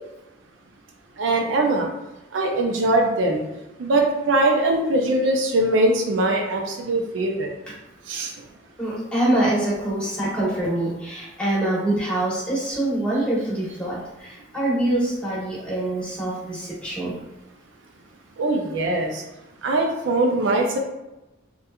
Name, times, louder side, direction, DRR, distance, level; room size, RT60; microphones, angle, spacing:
voice 1, 1.2-1.9 2.3-3.4 3.8-7.5 8.1-8.3 18.4-19.2 19.6-20.8, right 2 dB, 85° right, 2 dB, 0.4 m, -21 dB
voice 2, 8.8-17.1, right 1 dB, 5° left, -8 dB, 0.9 m, -25 dB
2.8 x 2.2 x 2.3 m, 0.97 s
head